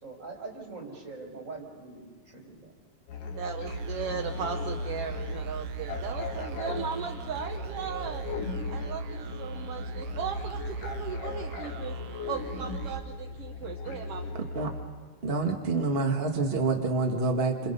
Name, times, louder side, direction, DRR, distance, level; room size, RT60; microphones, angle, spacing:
voice 1, 0.0-2.1 2.3-2.7, right 3 dB, 20° right, 1 dB, 4.6 m, -42 dB
sound 1, 3.1-14.8, left 3 dB, 85° left, 4.0 m, -37 dB
voice 2, 3.4-8.2 8.7-12.0 12.3-14.3, right 7 dB, 65° right, 4 dB, 1.6 m, -37 dB
sound 2, 3.7-14.0, right 6 dB, 80° right, 1.2 m, -41 dB
voice 3, 15.2-17.7, right 3 dB, 45° right, 2 dB, 0.7 m, -27 dB
29.0 x 27.5 x 5.5 m, 1.5 s
omnidirectional pair, 3.7 m